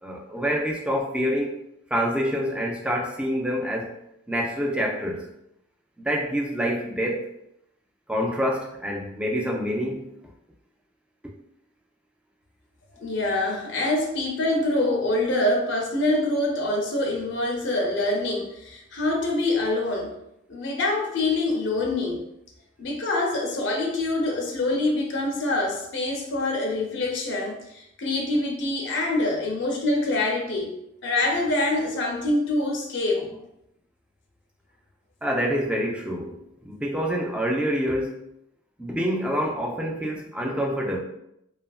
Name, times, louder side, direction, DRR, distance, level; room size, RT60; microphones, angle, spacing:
voice 1, 0.0-1.6 1.9-4.0 4.3-5.3 6.0-7.3 8.1-10.1 35.2-36.4 36.6-38.2 38.8-41.0, equal, 5° right, -1 dB, 0.3 m, -26 dB
voice 2, 13.0-20.1 20.5-22.2 22.8-33.2, left 2 dB, 70° left, 0 dB, 0.6 m, -25 dB
2.7 x 2.4 x 2.3 m, 0.81 s
head